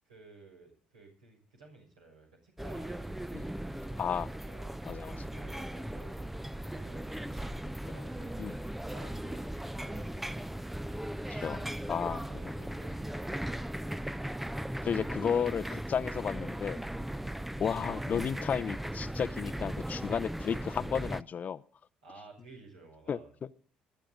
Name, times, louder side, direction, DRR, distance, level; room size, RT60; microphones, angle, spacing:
voice 1, 0.0-4.8 5.2-6.3 6.7-7.5 7.9-10.6 11.5-13.8 17.1-17.3 22.0-23.3, right 3 dB, 75° right, -1 dB, 6.5 m, -54 dB
sound 1, 2.6-21.2, right 1 dB, 5° right, 0.6 m, -38 dB
voice 2, 4.0-4.3 4.8-5.2 8.4-8.5 11.3-11.6 11.9-12.2 14.8-16.8 17.6-21.6 23.1-23.2, left 7 dB, 40° left, 15 dB, 0.7 m, -33 dB
22.0 x 13.0 x 3.8 m, 0.38 s
figure-of-eight pair, 50°, 4 cm